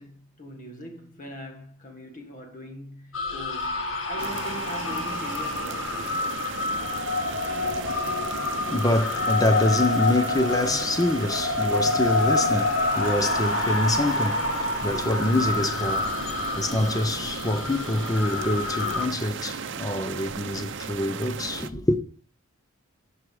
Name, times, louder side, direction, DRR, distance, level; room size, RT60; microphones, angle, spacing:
voice 1, 0.0-6.2, equal, 40° left, 1.8 m, -41 dB
sound 1, 3.1-19.1, left 3 dB, 80° left, 1.5 m, -28 dB
sound 2, 4.2-21.7, right 5 dB, 60° right, 0.6 m, -36 dB
voice 2, 7.5-22.0, left 1 dB, 20° left, 0.8 m, -26 dB
11.0 x 4.9 x 4.9 m
head